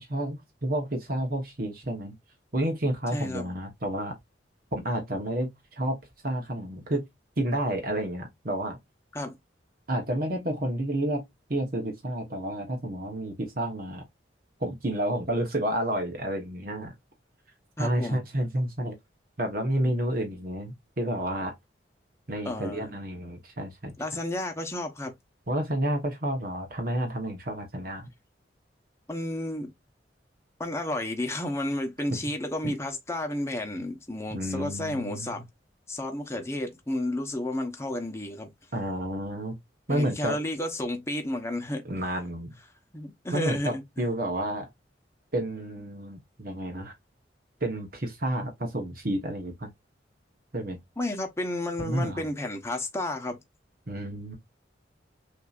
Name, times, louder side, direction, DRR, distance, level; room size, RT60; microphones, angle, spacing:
voice 1, 0.0-2.1 2.5-4.1 4.7-5.5 5.8-7.1 7.4-8.8 9.9-11.2 11.5-14.0 14.6-16.9 17.8-18.9 19.4-21.5 22.3-23.9 25.5-28.1 32.6-32.7 34.3-35.3 38.7-39.5 39.9-40.4 41.8-42.5 43.3-44.7 45.3-46.9 47.6-49.7 50.5-50.8 51.8-52.2 53.9-54.4, right 1 dB, 50° right, 1.1 m, -30 dB
voice 2, 3.1-3.5 9.1-9.4 17.8-18.2 22.4-22.9 24.0-25.1 29.1-29.7 30.6-35.4 35.9-38.5 39.9-41.8 42.9-44.0 51.0-53.4, left 1 dB, 15° left, 1.0 m, -32 dB
6.4 x 2.8 x 2.4 m
head